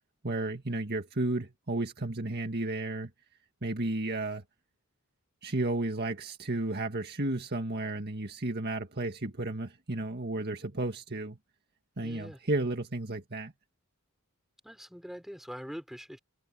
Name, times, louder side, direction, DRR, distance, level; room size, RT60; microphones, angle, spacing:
voice 1, 0.2-3.1 3.6-4.4 5.4-11.4 12.0-13.5, right 2 dB, 45° right, 1.9 m, -33 dB
voice 2, 12.0-12.4 14.6-16.2, equal, ahead, 6.3 m, -43 dB
head